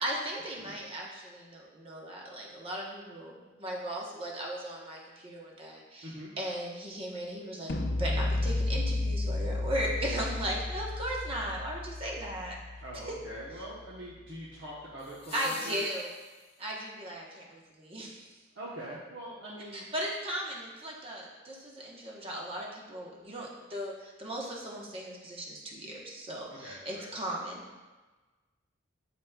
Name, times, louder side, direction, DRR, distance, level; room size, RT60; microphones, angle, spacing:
voice 1, 0.0-6.1 6.4-7.7 8.0-12.5 15.3-16.1 16.6-18.3 19.7-27.6, right 1 dB, 30° right, -2 dB, 1.1 m, -37 dB
voice 2, 6.0-6.3 12.8-15.8 18.5-19.9 26.5-27.1, right 1 dB, 65° right, -7 dB, 1.1 m, -43 dB
sound 1, 7.7-13.7, left 2 dB, 60° left, 0.6 m, -33 dB
sound 2, 9.4-9.5 15.0-16.8 19.0-19.1, left 3 dB, 30° left, 1.0 m, -48 dB
11.5 x 4.2 x 2.3 m, 1.2 s
head